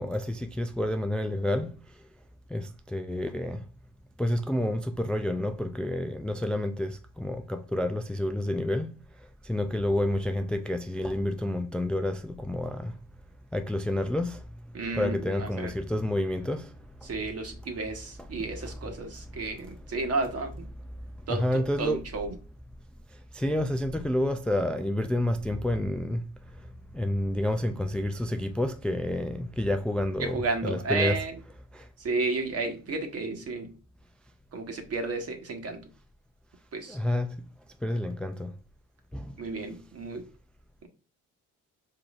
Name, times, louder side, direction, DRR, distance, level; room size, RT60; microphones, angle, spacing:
voice 1, 0.0-1.8 2.5-3.6 4.2-9.0 9.4-12.9 13.5-14.4 15.0-16.7 21.3-22.0 23.3-26.2 26.6-31.2 31.7-31.9 36.9-37.5 37.8-38.6 39.1-39.3, left 1 dB, 5° left, 0.3 m, -29 dB
voice 2, 14.7-15.7 17.0-20.7 21.3-22.3 30.2-31.4 32.0-33.7 34.5-35.9 36.7-37.0 39.4-40.3, right 3 dB, 55° right, 1.3 m, -32 dB
4.6 x 3.8 x 2.4 m
cardioid pair, 90°, 30 cm